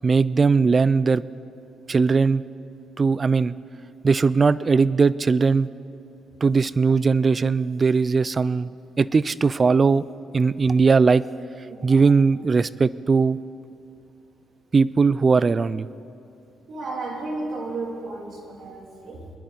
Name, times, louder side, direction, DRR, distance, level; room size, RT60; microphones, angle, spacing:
voice 1, 0.0-1.2 1.9-2.4 3.0-3.5 4.0-5.7 6.4-10.0 10.3-11.2 11.8-13.4 14.7-15.9, right 4 dB, 35° right, 18 dB, 0.4 m, -19 dB
voice 2, 11.7-12.0 16.7-19.3, right 2 dB, 60° right, 0 dB, 2.6 m, -33 dB
23.5 x 10.5 x 4.0 m, 2.6 s
cardioid pair, 90°, 0 cm